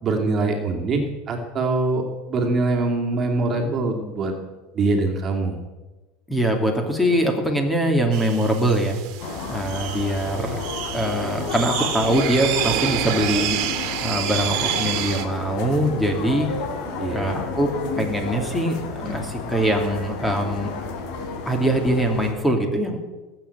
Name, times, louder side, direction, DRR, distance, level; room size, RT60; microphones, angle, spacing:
voice 1, 0.0-4.3 4.7-5.6 17.0-17.4, right 3 dB, 30° right, 1 dB, 2.5 m, -23 dB
voice 2, 6.3-9.0 9.5-10.6 10.9-13.6 14.0-16.5 17.1-17.7 18.0-20.7 21.5-23.0, right 1 dB, 5° left, 3 dB, 2.7 m, -22 dB
sound 1, 8.1-15.2, right 11 dB, 60° right, 2.0 m, -28 dB
sound 2, 9.2-22.3, left 4 dB, 60° left, 3.9 m, -31 dB
19.0 x 8.1 x 8.4 m, 1.2 s
supercardioid pair, 140°, 0 cm